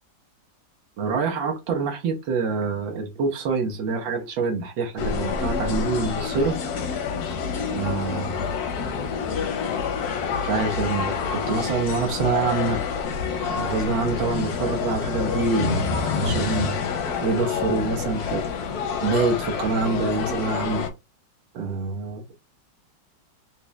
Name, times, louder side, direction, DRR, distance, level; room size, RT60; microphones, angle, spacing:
voice 1, 1.0-6.6 7.7-8.5 10.4-12.8 13.5-16.8 17.2-18.4 19.0-20.9 21.5-22.3, right 4 dB, 75° right, 1.5 m, -26 dB
sound 1, 5.0-20.9, left 6 dB, 65° left, 1.0 m, -27 dB
4.1 x 3.1 x 2.2 m
omnidirectional pair, 2.1 m